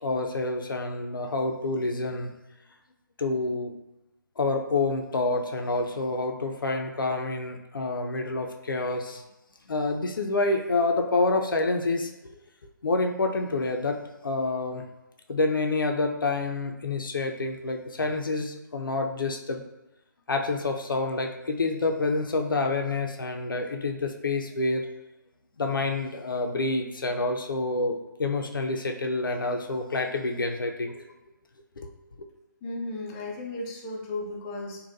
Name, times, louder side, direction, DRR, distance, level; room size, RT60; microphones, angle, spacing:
voice 1, 0.0-2.3 3.2-3.7 4.4-9.2 9.7-12.1 12.8-14.0 14.2-14.8 15.3-19.6 20.3-24.9 25.6-31.1 31.8-31.9 32.2-32.3, left 3 dB, 80° left, 4 dB, 0.5 m, -28 dB
voice 2, 32.6-34.8, left 2 dB, 15° left, -2 dB, 0.3 m, -35 dB
3.9 x 2.2 x 2.5 m, 0.98 s
figure-of-eight pair, 145°, 11 cm